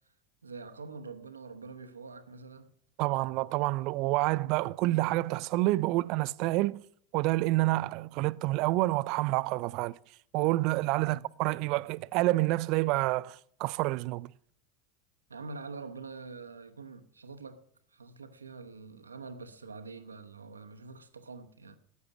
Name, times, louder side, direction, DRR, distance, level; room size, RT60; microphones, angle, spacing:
voice 1, 0.4-2.7 11.0-11.2 15.3-17.6 17.9-21.8, right 4 dB, 90° right, 0.9 m, -45 dB
voice 2, 3.0-6.8 7.1-9.9 10.3-14.3, right 20 dB, 55° right, 0.4 m, -28 dB
14.0 x 8.6 x 6.1 m
hypercardioid pair, 85°, 0 cm